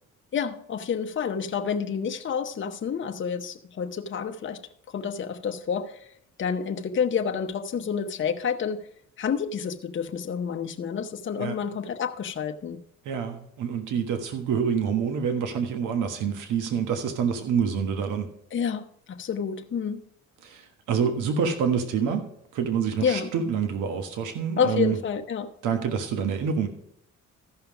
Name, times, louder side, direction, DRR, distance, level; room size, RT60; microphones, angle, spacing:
voice 1, 0.3-4.6 4.9-6.1 6.4-8.9 9.2-12.8 18.5-20.0 23.0-23.3 24.6-25.5, left 7 dB, 40° left, 0.8 m, -29 dB
voice 2, 13.0-18.3 20.4-22.3 22.5-25.0 25.6-26.7, right 7 dB, 90° right, 1.4 m, -27 dB
14.0 x 5.7 x 4.8 m
cardioid pair, 90°, 30 cm